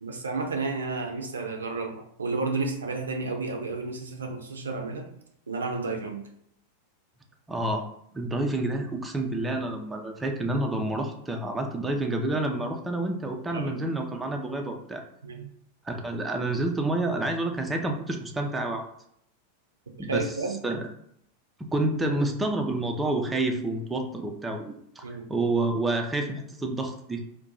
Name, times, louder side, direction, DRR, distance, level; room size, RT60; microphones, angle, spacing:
voice 1, 0.0-5.1 5.5-6.2 13.5-13.9 15.2-15.5 20.0-20.6 25.0-25.2, right 3 dB, 70° right, 3 dB, 0.5 m, -31 dB
voice 2, 7.5-7.9 8.1-15.0 15.8-18.8 20.0-20.3 20.6-20.9 21.7-27.2, right 2 dB, 10° right, 3 dB, 0.4 m, -29 dB
2.6 x 2.2 x 3.9 m, 0.70 s
figure-of-eight pair, 90°, 0 cm